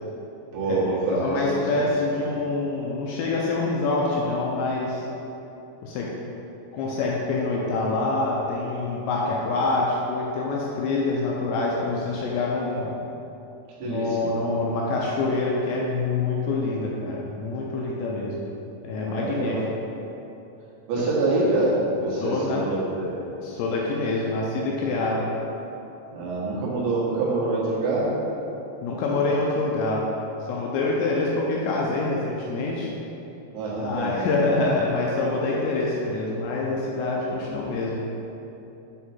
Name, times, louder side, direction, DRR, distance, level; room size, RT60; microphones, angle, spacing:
voice 1, 0.5-1.7 13.8-14.3 19.0-19.7 20.9-23.2 26.1-28.1 33.5-34.4, right 2 dB, 80° right, -7 dB, 3.9 m, -26 dB
voice 2, 1.1-5.0 5.8-6.1 6.7-12.9 13.8-18.4 18.8-19.6 21.0-21.1 22.2-22.7 23.4-25.3 28.8-30.1 30.5-32.9 33.8-38.0, left 3 dB, 80° left, -3 dB, 2.7 m, -26 dB
9.0 x 3.7 x 4.3 m, 3.0 s
omnidirectional pair, 5.4 m